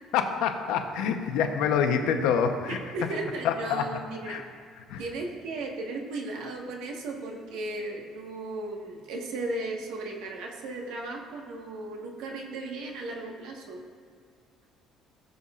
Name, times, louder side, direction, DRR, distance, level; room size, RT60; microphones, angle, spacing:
voice 1, 0.1-2.8 3.4-3.8 4.2-4.4 4.9-5.0, left 7 dB, 85° left, 6 dB, 0.9 m, -26 dB
voice 2, 2.7-4.4 5.0-13.8, right 2 dB, 90° right, 0 dB, 1.5 m, -36 dB
17.5 x 7.0 x 2.5 m, 2.2 s
cardioid pair, 165°, 0 cm